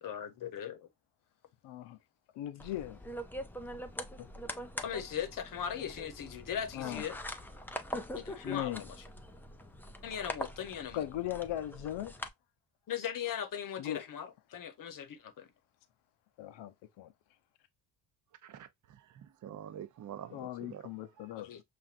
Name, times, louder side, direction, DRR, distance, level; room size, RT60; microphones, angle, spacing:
voice 1, 0.0-0.9 4.8-7.2 8.1-8.8 10.0-11.0 12.9-15.5 21.4-21.6, left 9 dB, 45° left, 0.9 m, -39 dB
voice 2, 1.6-2.0 2.3-3.0 4.2-4.3 6.7-7.0 8.4-8.9 10.9-12.1 13.8-14.1 16.4-17.1 20.3-21.5, left 12 dB, 75° left, 0.7 m, -38 dB
sound 1, 2.6-12.3, equal, 5° left, 0.3 m, -43 dB
voice 3, 18.4-20.9 21.2-21.3, right 10 dB, 45° right, 0.6 m, -47 dB
5.8 x 2.6 x 2.5 m
cardioid pair, 120°, 44 cm